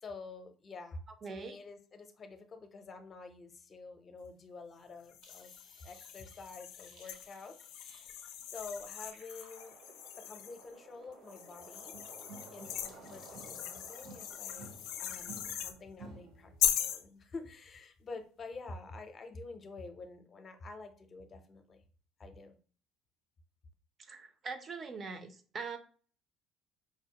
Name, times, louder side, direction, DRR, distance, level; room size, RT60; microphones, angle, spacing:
voice 1, 0.0-5.5 5.8-7.5 8.5-9.8 10.2-11.9 12.5-14.7 15.0-21.8 22.2-22.6, left 3 dB, 35° left, 7 dB, 0.6 m, -48 dB
voice 2, 1.2-1.6 24.0-25.8, right 4 dB, 35° right, 9 dB, 0.5 m, -42 dB
sound 1, 5.1-10.7 11.3-15.8 16.6-17.0, left 10 dB, 85° left, 0.4 m, -39 dB
sound 2, 5.2-15.4, right 3 dB, 65° right, 1.0 m, -57 dB
sound 3, 11.9-13.7 14.0-16.6, right 2 dB, 90° right, 1.8 m, -53 dB
4.8 x 2.0 x 2.8 m, 0.42 s
cardioid pair, 110°, 0 cm